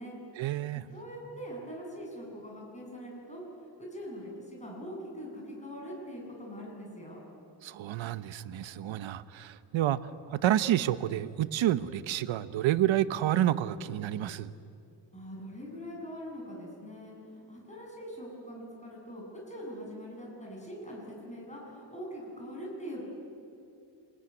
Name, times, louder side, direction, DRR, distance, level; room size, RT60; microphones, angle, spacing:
voice 1, 0.4-0.8 7.6-10.0 10.3-14.5, right 12 dB, 85° right, 14 dB, 1.0 m, -29 dB
voice 2, 0.9-3.4 3.8-7.2 15.1-23.0, equal, 15° left, -2 dB, 7.8 m, -42 dB
28.0 x 21.5 x 9.8 m, 2.7 s
wide cardioid pair, 150°, 45 cm